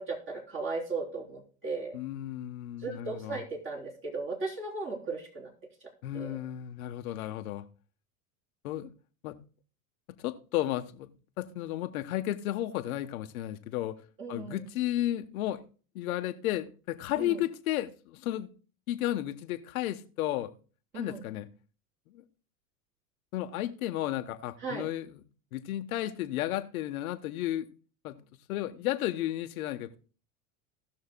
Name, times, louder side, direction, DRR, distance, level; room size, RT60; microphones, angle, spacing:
voice 1, 0.0-2.0 2.8-5.5 6.1-6.4 14.2-14.7 17.2-17.4 20.9-21.2 24.6-24.9, right 3 dB, 25° right, -2 dB, 3.6 m, -36 dB
voice 2, 1.9-3.4 6.0-7.6 8.6-8.9 9.2-9.4 10.2-11.1 11.4-14.0 14.3-15.6 15.9-18.5 18.9-20.5 20.9-21.5 22.1-22.2 23.3-25.2 25.5-27.7 28.0-28.2 28.5-30.0, left 13 dB, 75° left, 7 dB, 1.1 m, -33 dB
18.0 x 6.4 x 2.2 m, 0.38 s
hypercardioid pair, 105°, 43 cm